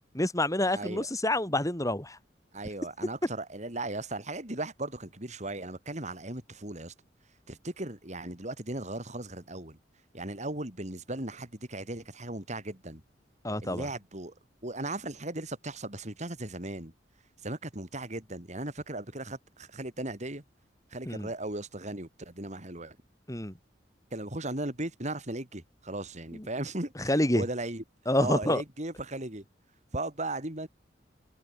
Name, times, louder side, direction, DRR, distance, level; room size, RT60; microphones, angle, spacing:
voice 1, 0.1-2.2 13.4-13.9 21.1-21.3 23.3-23.5 26.3-26.5 27.0-27.4 28.1-28.6, left 1 dB, 20° left, 7.2 m, -27 dB
voice 2, 0.7-1.1 2.5-6.9 7.5-9.8 10.1-13.0 13.6-14.3 14.6-16.9 17.4-20.4 20.9-23.0 24.1-27.8 28.2-29.4 29.9-30.7, right 2 dB, 40° right, 4.9 m, -37 dB
head